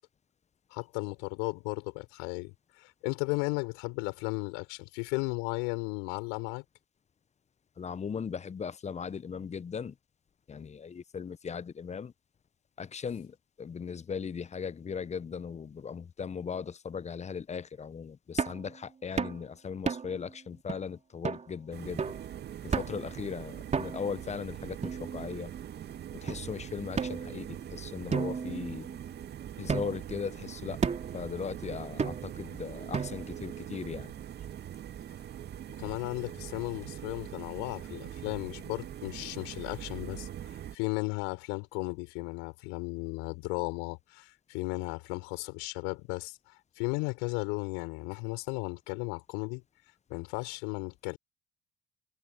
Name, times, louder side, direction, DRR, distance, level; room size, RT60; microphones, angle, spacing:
voice 1, 0.7-6.6 35.8-49.6 50.1-51.2, left 32 dB, 70° left, 4.8 m, -35 dB
voice 2, 7.8-9.9 10.5-12.1 12.8-22.1 22.6-25.5 26.2-28.9 29.6-30.8 31.1-34.1, left 6 dB, 35° left, 1.2 m, -38 dB
sound 1, 18.4-18.7 19.2-19.4 19.9-20.2 20.7-20.8 21.2-21.5 22.0-22.3 22.7-23.1 23.7-24.2 24.8-25.5 26.3-26.4 27.0-27.7 28.1-29.2 29.7-30.1 30.8-31.2 32.0-32.4 32.9-33.4, right 5 dB, 35° right, 3.7 m, -33 dB
sound 2, 21.7-40.7, right 10 dB, 50° right, 2.7 m, -43 dB
hypercardioid pair, 50°, 21 cm